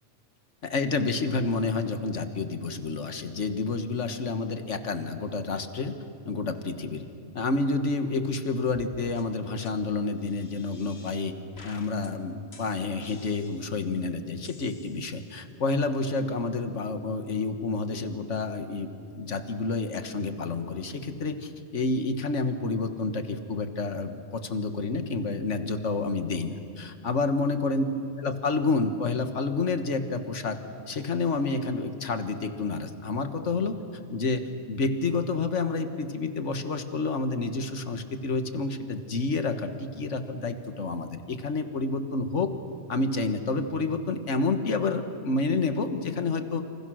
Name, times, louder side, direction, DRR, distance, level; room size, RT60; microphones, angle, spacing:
voice 1, 0.6-6.0 6.3-7.1 7.3-11.3 11.6-27.8 28.2-30.6 30.9-33.8 34.1-42.5 42.9-46.6, left 3 dB, 80° left, 8 dB, 1.8 m, -29 dB
sound 1, 8.7-8.9 9.2-9.3 9.6-9.7 10.2-11.3 11.6-12.1 12.5-13.9 14.4-15.4, left 4 dB, 60° left, 1.9 m, -51 dB
28.5 x 27.5 x 6.3 m, 2.4 s
omnidirectional pair, 1.2 m